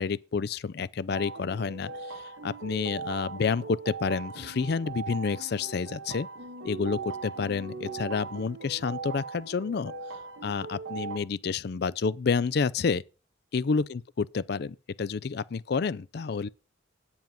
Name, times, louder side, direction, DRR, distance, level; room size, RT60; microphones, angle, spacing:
voice 1, 0.0-6.3 6.6-9.9 10.4-13.0 13.5-16.5, left 5 dB, 55° left, 0.4 m, -29 dB
sound 1, 1.1-11.2, right 4 dB, 90° right, 1.4 m, -39 dB
9.3 x 7.1 x 5.6 m
head